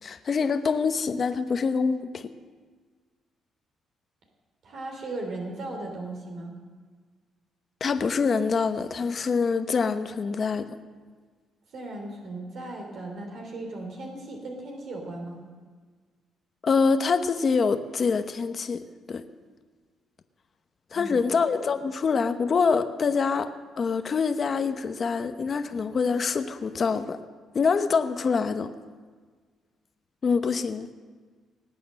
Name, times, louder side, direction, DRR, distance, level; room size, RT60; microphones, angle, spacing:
voice 1, 0.0-2.3 7.8-10.7 16.6-19.2 20.9-27.2 27.5-28.7 30.2-31.0, left 5 dB, 45° left, 9 dB, 0.9 m, -25 dB
voice 2, 4.6-6.5 11.7-15.4 20.9-21.2, right 2 dB, 65° right, 1 dB, 3.1 m, -37 dB
19.0 x 8.6 x 7.6 m, 1.5 s
cardioid pair, 90°, 0 cm